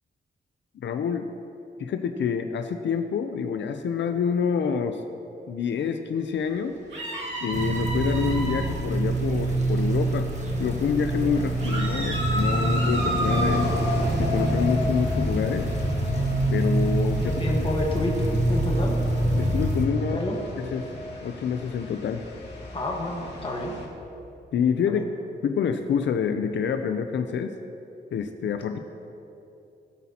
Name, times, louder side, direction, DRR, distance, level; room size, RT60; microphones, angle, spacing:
voice 1, 0.8-1.3 1.8-5.0 5.5-6.7 7.4-10.3 10.6-13.7 14.2-15.7 16.5-17.2 17.6-17.7 19.3-20.2 20.6-20.9 21.2-22.2 24.5-25.1 25.4-27.5 28.1-28.8, left 7 dB, 90° left, 7 dB, 0.5 m, -27 dB
sound 1, 6.9-8.7 11.6-13.7, right 1 dB, 90° right, 2.2 m, -30 dB
sound 2, 7.2-23.8, left 2 dB, 65° left, 2.3 m, -34 dB
sound 3, 7.5-19.8, right 2 dB, 40° right, 1.2 m, -26 dB
voice 2, 17.2-19.0 20.1-20.4 22.7-23.8 24.9-25.0, left 1 dB, 30° left, -1 dB, 1.4 m, -29 dB
18.5 x 8.4 x 2.9 m, 2.9 s
wide cardioid pair, 180°, 18 cm